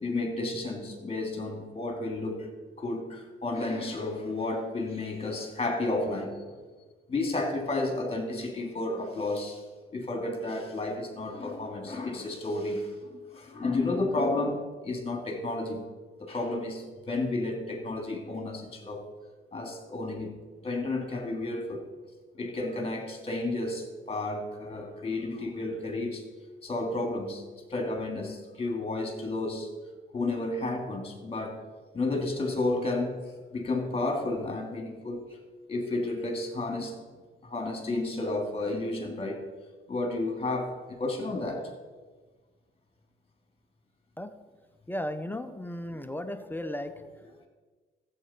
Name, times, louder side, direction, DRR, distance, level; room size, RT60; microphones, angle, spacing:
voice 1, 0.0-2.5 2.8-6.4 7.1-9.6 9.9-15.8 16.2-19.1 19.5-20.3 20.6-21.9 22.3-26.2 26.6-27.4 27.7-29.7 30.1-31.6 31.9-33.2 33.5-35.4 35.7-37.0 37.4-39.4 39.9-41.6, left 2 dB, 30° left, 2 dB, 2.6 m, -32 dB
voice 2, 44.9-47.5, left 1 dB, 10° left, 9 dB, 0.6 m, -36 dB
13.5 x 8.2 x 4.4 m, 1.4 s
cardioid pair, 90°, 20 cm